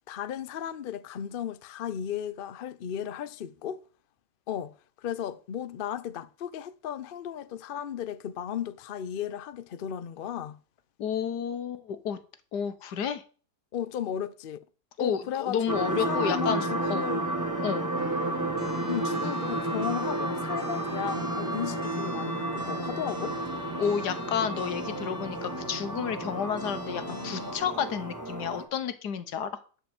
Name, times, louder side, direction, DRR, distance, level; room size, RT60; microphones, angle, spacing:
voice 1, 0.1-3.8 4.5-10.6 13.7-14.6 15.0-17.2 18.9-23.4, left 9 dB, 55° left, 0.6 m, -35 dB
voice 2, 11.0-12.2 12.5-13.2 15.0-17.1 17.6-17.9 23.8-29.6, left 7 dB, 85° left, 1.6 m, -31 dB
sound 1, 15.7-28.6, right 2 dB, 10° right, 1.3 m, -32 dB
sound 2, 18.0-27.5, left 1 dB, 35° left, 2.4 m, -42 dB
11.5 x 5.0 x 7.8 m
omnidirectional pair, 1.7 m